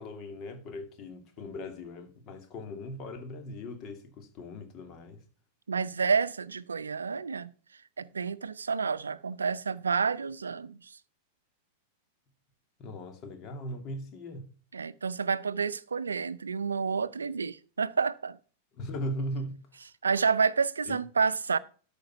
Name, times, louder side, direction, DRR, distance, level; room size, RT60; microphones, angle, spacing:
voice 1, 0.0-5.2 12.8-14.5 18.7-19.6 20.9-21.0, left 1 dB, 40° left, 2.4 m, -39 dB
voice 2, 5.7-7.5 8.0-10.9 14.7-18.4 20.0-21.6, right 5 dB, 80° right, 0.5 m, -29 dB
12.5 x 5.3 x 5.7 m
figure-of-eight pair, 95°, 0 cm